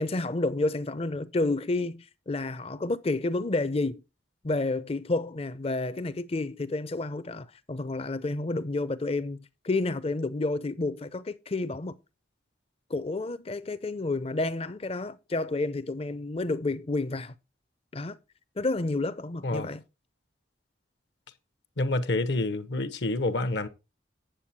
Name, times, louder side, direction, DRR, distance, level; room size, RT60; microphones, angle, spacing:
voice 1, 0.0-4.0 4.4-12.0 12.9-17.3 17.9-18.2 18.6-19.8, left 2 dB, 30° left, 0.6 m, -30 dB
voice 2, 21.8-23.7, left 2 dB, 60° left, 0.9 m, -28 dB
9.0 x 7.5 x 4.2 m
head